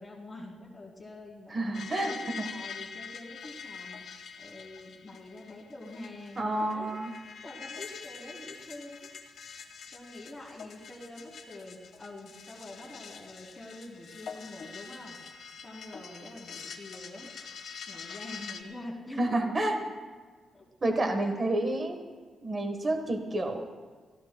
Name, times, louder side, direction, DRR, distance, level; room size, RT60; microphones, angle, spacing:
voice 1, 0.0-6.9 7.4-9.1 9.9-15.2 15.5-17.3 17.9-19.6 20.5-20.6 21.2-21.3 21.6-21.7, left 1 dB, 10° left, -4 dB, 2.9 m, -46 dB
voice 2, 1.5-2.5 6.4-7.1 19.2-19.8 20.8-22.0 22.4-23.6, right 1 dB, 25° right, 5 dB, 1.2 m, -29 dB
sound 1, 1.7-18.6, left 6 dB, 60° left, 1.4 m, -45 dB
29.5 x 15.0 x 2.2 m, 1.4 s
wide cardioid pair, 165°, 0 cm